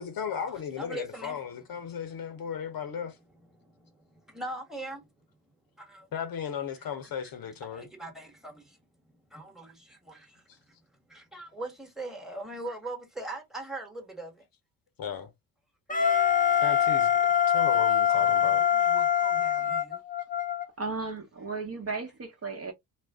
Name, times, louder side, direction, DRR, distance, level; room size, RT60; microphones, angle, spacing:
voice 1, 0.0-3.2 6.1-7.9 10.5-10.6 15.0-15.3 16.6-18.6, left 7 dB, 50° left, 0.8 m, -36 dB
voice 2, 0.8-1.4 2.1-2.5 3.6-5.2 5.8-6.1 7.7-8.8 9.0-10.8 11.1-14.5 17.7-20.0, right 2 dB, ahead, 1.3 m, -42 dB
Wind instrument woodwind instrument, 15.9-20.7, left 9 dB, 15° left, 0.7 m, -24 dB
voice 3, 20.8-22.7, right 4 dB, 30° right, 0.9 m, -35 dB
2.4 x 2.1 x 3.4 m
supercardioid pair, 65°, 46 cm